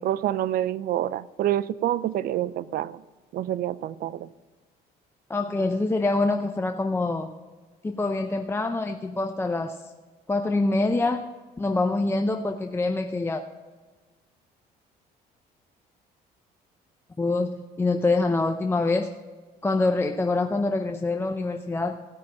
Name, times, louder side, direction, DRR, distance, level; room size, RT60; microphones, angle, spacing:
voice 1, 0.0-3.0 3.3-4.3, right 12 dB, 60° right, 18 dB, 0.5 m, -27 dB
voice 2, 5.3-7.3 7.8-9.8 10.3-13.4 17.2-19.2 19.6-22.1, left 2 dB, 15° left, 5 dB, 0.6 m, -25 dB
16.5 x 5.9 x 6.2 m, 1.3 s
cardioid pair, 110°, 17 cm